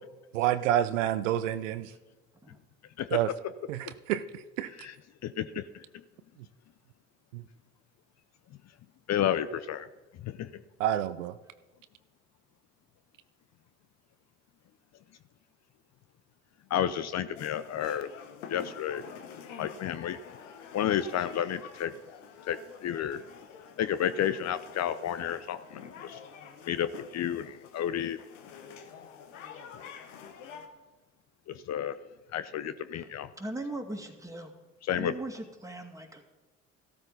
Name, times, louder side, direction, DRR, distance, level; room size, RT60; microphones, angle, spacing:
voice 1, 0.3-1.9 3.1-3.3 3.7-3.8 4.1-4.2 4.6-4.7 7.3-7.4 10.8-11.3, right 12 dB, 80° right, 13 dB, 0.6 m, -27 dB
voice 2, 5.2-5.8 9.1-9.9 10.2-10.6 16.7-18.1 18.5-20.2 20.7-21.9 22.5-23.2 23.8-26.2 26.7-28.2 31.5-32.0 32.3-33.3 34.9-35.1, left 10 dB, 45° left, 13 dB, 0.6 m, -31 dB
sound 1, 17.4-30.7, left 7 dB, 80° left, 1.2 m, -48 dB
voice 3, 33.4-34.5 35.0-36.3, right 1 dB, 10° right, 3 dB, 2.3 m, -39 dB
14.5 x 13.0 x 4.0 m, 1.2 s
hypercardioid pair, 55°, 37 cm